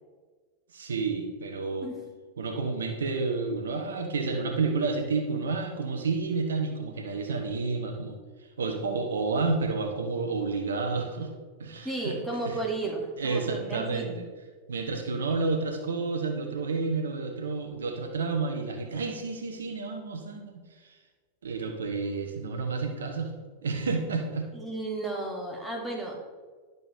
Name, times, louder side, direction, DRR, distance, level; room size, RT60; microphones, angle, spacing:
voice 1, 0.7-1.9 2.4-8.2 8.6-11.3 11.6-12.6 13.2-14.2 14.7-21.0 21.4-23.3 23.6-24.5, right 4 dB, 65° right, 4 dB, 1.1 m, -30 dB
voice 2, 11.8-14.2 24.5-26.2, right 2 dB, ahead, -3 dB, 2.1 m, -34 dB
11.0 x 6.8 x 3.3 m, 1.4 s
figure-of-eight pair, 90°, 0 cm